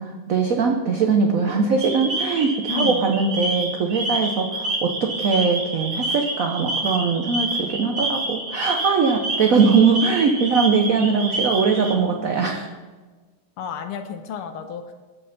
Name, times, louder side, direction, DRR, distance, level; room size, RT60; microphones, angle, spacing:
voice 1, 0.0-12.7, right 5 dB, 85° right, 3 dB, 0.7 m, -21 dB
sound 1, 1.8-11.9, right 2 dB, 45° right, 1.6 m, -28 dB
voice 2, 2.7-3.1 13.6-14.9, left 7 dB, 85° left, 6 dB, 1.6 m, -31 dB
7.8 x 6.6 x 5.8 m, 1.3 s
omnidirectional pair, 2.4 m